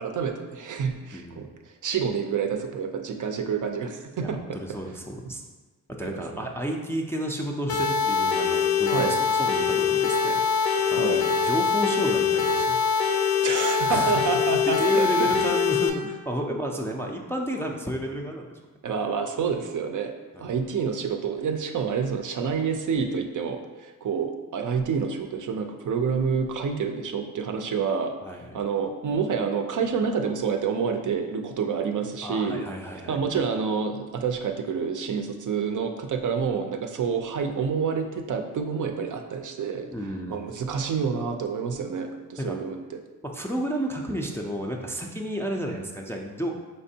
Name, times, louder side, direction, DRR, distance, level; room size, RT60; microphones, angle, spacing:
voice 1, 0.0-4.6 5.2-5.3 6.0-6.5 8.9-9.2 11.0-11.3 13.4-15.3 18.8-20.1 20.4-28.1 28.5-32.6 33.1-39.9 40.3-43.0, right 6 dB, 60° right, 5 dB, 0.5 m, -28 dB
voice 2, 1.1-1.4 4.2-5.4 5.9-12.8 13.9-14.1 14.8-18.5 20.3-20.5 28.2-28.6 32.2-33.2 39.9-40.3 42.4-42.6 43.2-46.5, equal, 5° left, 0 dB, 0.4 m, -31 dB
sound 1, 7.7-15.9, left 6 dB, 75° left, 0.6 m, -23 dB
4.3 x 3.2 x 2.7 m, 1.3 s
cardioid pair, 75°, 36 cm